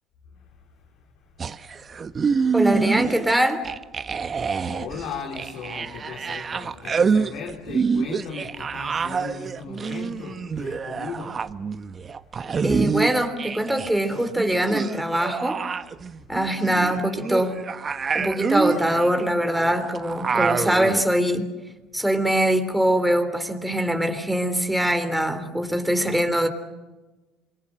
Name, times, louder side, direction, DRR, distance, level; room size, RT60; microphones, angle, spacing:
sound 1, 1.4-3.3 3.6-13.9 14.2-21.0, right 5 dB, 30° right, 1.1 m, -27 dB
voice 1, 2.5-3.6 12.6-15.6 16.3-17.6 18.1-21.4 21.9-26.5, right 1 dB, 5° right, 7 dB, 3.4 m, -23 dB
voice 2, 4.6-11.4, left 5 dB, 65° left, 2 dB, 3.8 m, -37 dB
27.0 x 23.0 x 7.9 m, 1.2 s
supercardioid pair, 95°, 0 cm